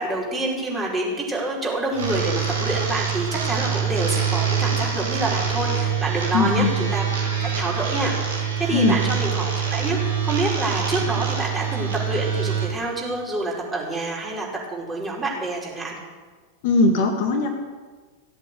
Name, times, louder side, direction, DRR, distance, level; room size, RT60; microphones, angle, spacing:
voice 1, 0.0-7.0 7.4-15.9, right 2 dB, 15° right, -3 dB, 5.0 m, -27 dB
sound 1, 1.9-12.6, right 7 dB, 70° right, 3.5 m, -25 dB
voice 2, 6.3-6.7 8.7-9.0 16.6-17.5, left 3 dB, 50° left, 4 dB, 1.8 m, -19 dB
16.0 x 8.1 x 8.3 m, 1.4 s
figure-of-eight pair, 90°, 0 cm